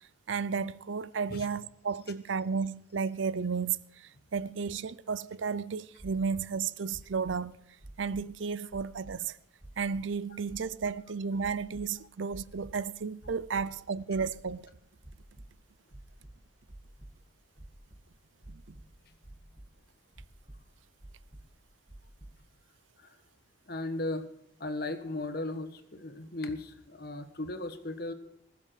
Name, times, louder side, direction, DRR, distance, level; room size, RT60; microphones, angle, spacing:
voice 1, 0.3-7.6 8.0-9.4 9.8-14.7 18.5-18.8, right 5 dB, 80° right, 0.6 m, -33 dB
sound 1, 6.0-6.4 6.9-7.3 7.8-8.3 8.7-9.1 9.6-10.0 10.5-10.9 11.4-11.8 12.3-12.8 13.2-13.7 14.1-14.7 15.0-15.5 15.9-17.1 17.6-18.0 18.4-18.9 19.2-19.7 20.1-20.6 21.0-21.5 21.9-22.3, right 1 dB, 25° right, 2.4 m, -49 dB
voice 2, 23.7-24.3 24.6-28.1, left 2 dB, 50° left, 1.4 m, -36 dB
20.0 x 7.7 x 7.7 m
head